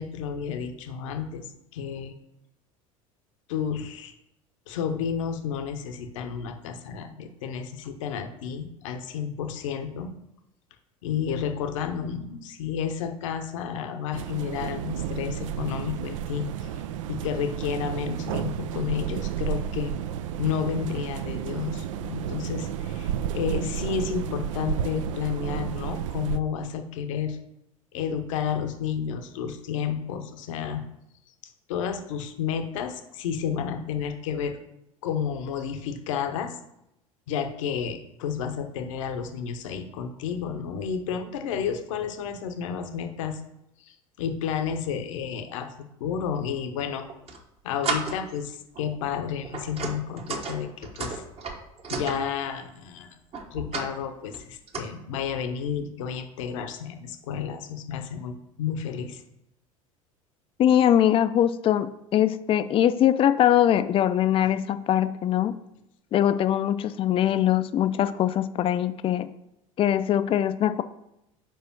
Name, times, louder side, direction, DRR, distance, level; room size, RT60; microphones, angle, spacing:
voice 1, 0.0-1.5 1.7-2.1 3.5-4.1 4.7-10.1 11.0-16.7 17.1-19.9 20.4-27.4 27.9-30.8 31.7-34.6 35.0-36.6 37.3-43.4 43.8-45.7 46.0-47.1 47.6-51.2 51.9-53.1 53.5-59.2, left 7 dB, 65° left, 6 dB, 0.8 m, -31 dB
sound 1, 14.1-26.4, right 10 dB, 65° right, 0.4 m, -32 dB
sound 2, 47.0-47.4 47.8-48.4 48.8-49.0 49.4-52.2 53.3-53.9 54.3-54.8, right 4 dB, 35° right, 1.1 m, -33 dB
voice 2, 60.6-65.6 66.1-69.3 69.8-70.8, left 11 dB, 30° left, 13 dB, 0.4 m, -22 dB
5.0 x 4.6 x 6.0 m, 0.84 s
figure-of-eight pair, 70°, 18 cm